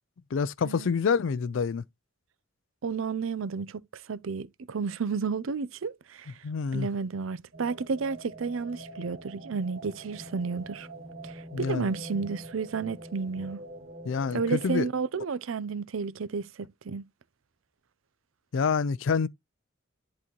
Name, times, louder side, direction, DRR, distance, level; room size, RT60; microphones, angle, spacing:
voice 1, 0.3-1.8 6.4-6.9 11.5-11.9 14.0-14.9 18.5-19.3, left 5 dB, 65° left, 0.4 m, -27 dB
voice 2, 2.8-6.3 6.7-10.9 11.2-13.6 14.3-17.0, right 5 dB, 75° right, 0.5 m, -32 dB
sound 1, 7.5-14.7, right 1 dB, 50° right, 2.6 m, -45 dB
11.0 x 4.1 x 2.9 m
head